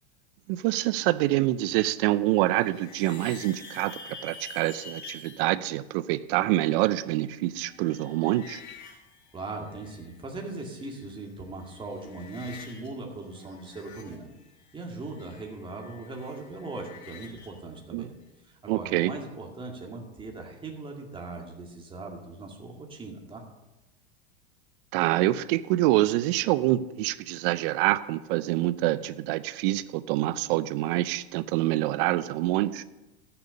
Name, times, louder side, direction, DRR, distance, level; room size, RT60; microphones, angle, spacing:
voice 1, 0.5-8.6 17.9-18.1 18.7-19.1 24.9-32.8, right 16 dB, 60° right, 15 dB, 0.5 m, -26 dB
sound 1, 2.0-5.5 6.8-10.2 10.5-11.3 11.6-12.9 13.2-17.6, left 4 dB, 85° left, 2.8 m, -48 dB
voice 2, 9.3-14.3 14.7-18.1 18.4-23.4, right 3 dB, 15° right, 0 dB, 2.1 m, -39 dB
13.5 x 6.9 x 5.2 m, 1.0 s
supercardioid pair, 115°, 31 cm